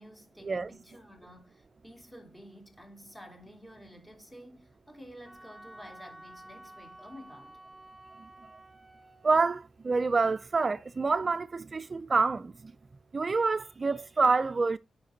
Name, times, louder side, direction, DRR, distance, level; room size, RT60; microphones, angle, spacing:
voice 1, 0.0-7.6, equal, 10° left, 3.2 m, -51 dB
Wind instrument woodwind instrument, 5.2-9.5, right 1 dB, 15° right, 1.7 m, -51 dB
voice 2, 9.2-12.7 13.1-14.8, right 4 dB, 40° right, 0.3 m, -27 dB
9.3 x 5.8 x 3.9 m
cardioid pair, 70°, 0 cm